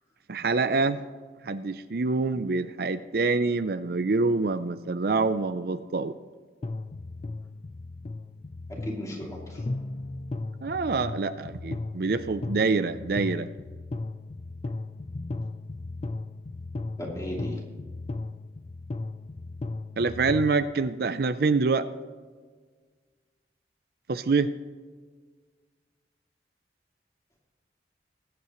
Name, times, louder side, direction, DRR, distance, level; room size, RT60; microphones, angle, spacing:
voice 1, 0.3-1.0 1.4-6.1 10.6-13.5 20.0-21.9 24.1-24.5, right 4 dB, 60° right, 12 dB, 0.5 m, -26 dB
sound 1, 6.6-20.6, left 2 dB, 35° left, 0.4 m, -36 dB
voice 2, 8.7-9.6 17.0-17.6, equal, 20° left, -2 dB, 2.7 m, -36 dB
20.5 x 8.4 x 3.1 m, 1.5 s
head